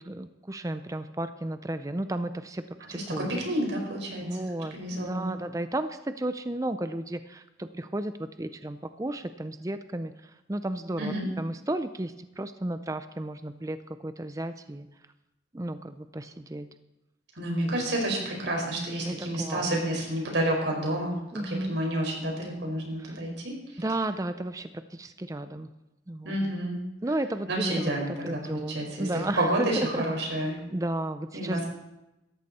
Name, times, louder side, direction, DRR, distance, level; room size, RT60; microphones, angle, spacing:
voice 1, 0.0-2.6 2.9-3.3 4.2-13.8 14.0-14.9 15.5-16.7 17.6-17.9 19.0-19.7 20.2-20.4 21.3-21.8 23.0-23.2 23.8-25.7 26.1-26.4 27.0-30.0 30.7-31.6, right 1 dB, 20° right, 11 dB, 0.5 m, -33 dB
voice 2, 2.9-4.3 4.7-5.3 11.0-11.3 17.3-21.2 21.4-23.8 26.2-26.8 27.5-29.1 29.4-30.7 31.3-31.6, right 1 dB, 85° right, 0 dB, 5.0 m, -29 dB
17.5 x 14.0 x 4.2 m, 0.95 s
head